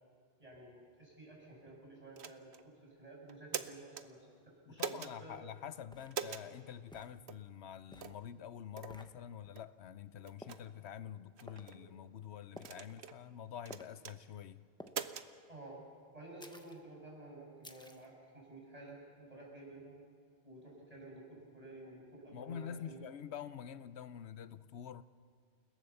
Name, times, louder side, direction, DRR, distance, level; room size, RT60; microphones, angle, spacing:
voice 1, 0.4-4.9 5.2-5.4 11.7-11.9 15.5-15.8 16.1-20.0 20.4-23.1, right 2 dB, 35° right, -3 dB, 6.8 m, -52 dB
sound 1, 2.2-2.6 3.3-4.1 4.8-5.1 6.1-6.5 7.3-7.4 8.0-8.2 8.8-9.0 9.6-9.7 10.3-10.6 11.4-11.8 12.6-13.2 13.7-14.2 14.9-15.3, right 7 dB, 85° right, 1.1 m, -42 dB
voice 2, 4.7-14.7 22.3-25.0, left 9 dB, 85° left, 14 dB, 1.0 m, -47 dB
sound 2, 5.9-6.2 6.9-7.2 7.9-8.2 8.9-9.1 10.4-10.7 11.5-11.7 12.6-12.9 13.7-13.9 14.8-15.0 16.4-16.8 17.6-18.1, equal, 5° left, 1.1 m, -53 dB
29.0 x 17.5 x 7.0 m, 2.1 s
omnidirectional pair, 1.1 m